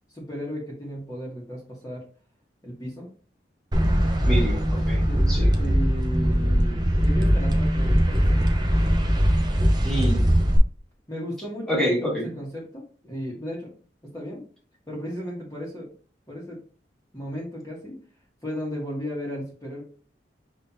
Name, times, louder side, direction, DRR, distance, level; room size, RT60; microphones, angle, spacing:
voice 1, 0.1-2.1 2.6-3.1 5.1-8.5 11.1-13.7 14.0-14.4 14.9-15.9 16.3-16.6 17.1-18.0 18.4-19.8, equal, 20° left, -5 dB, 1.3 m, -35 dB
sound 1, 3.7-10.6, equal, 25° right, 0.7 m, -21 dB
voice 2, 4.2-5.0 5.3-5.5 9.8-10.2 11.7-12.3, equal, ahead, -3 dB, 1.6 m, -27 dB
5.7 x 3.4 x 2.7 m, 0.40 s
head